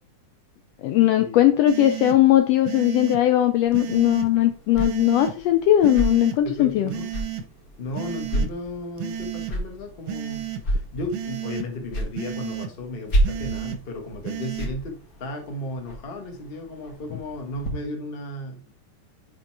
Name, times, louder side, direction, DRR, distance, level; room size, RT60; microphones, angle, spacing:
voice 1, 0.8-6.9, left 13 dB, 80° left, 1.4 m, -19 dB
sound 1, 1.7-2.2 2.7-3.2 3.7-4.3 4.8-5.3 5.8-6.4 6.9-7.4 8.0-8.5 9.0-9.5 10.1-10.6 11.1-11.7 12.2-12.7 13.2-13.8 14.3-14.7, right 10 dB, 70° right, 1.5 m, -32 dB
sound 2, 3.6-17.7, right 1 dB, 40° left, 1.4 m, -32 dB
voice 2, 6.4-7.1 7.8-18.6, left 1 dB, 65° left, 0.5 m, -34 dB
5.3 x 5.1 x 4.7 m
omnidirectional pair, 3.4 m